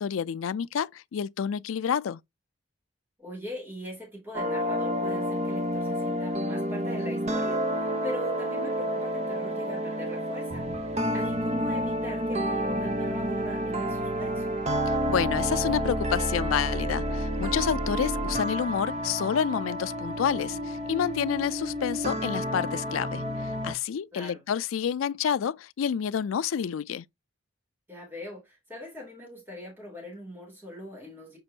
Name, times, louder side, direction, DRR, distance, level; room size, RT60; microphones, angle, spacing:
voice 1, 0.0-2.2 14.9-27.0, left 8 dB, 80° left, 0.4 m, -29 dB
voice 2, 3.2-14.5 24.1-24.4 27.9-31.4, left 1 dB, 10° right, 3.1 m, -41 dB
sound 1, 4.3-23.7, equal, 30° right, 0.8 m, -29 dB
6.9 x 5.2 x 2.8 m
head